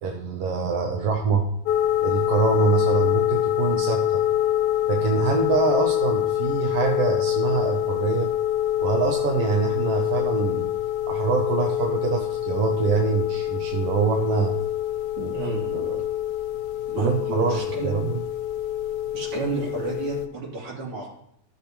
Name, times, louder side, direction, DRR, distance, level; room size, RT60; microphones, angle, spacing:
voice 1, 0.0-1.5 2.0-4.2 4.9-8.3 8.8-10.7 11.1-14.5 15.2-16.1 17.0-18.2, right 5 dB, 65° right, 1 dB, 1.6 m, -25 dB
sound 1, 1.7-20.3, left 12 dB, 75° left, 1.8 m, -25 dB
voice 2, 15.2-15.8 16.9-17.9 19.1-21.1, right 4 dB, 45° right, -5 dB, 3.7 m, -32 dB
15.0 x 6.6 x 3.0 m, 0.74 s
omnidirectional pair, 3.6 m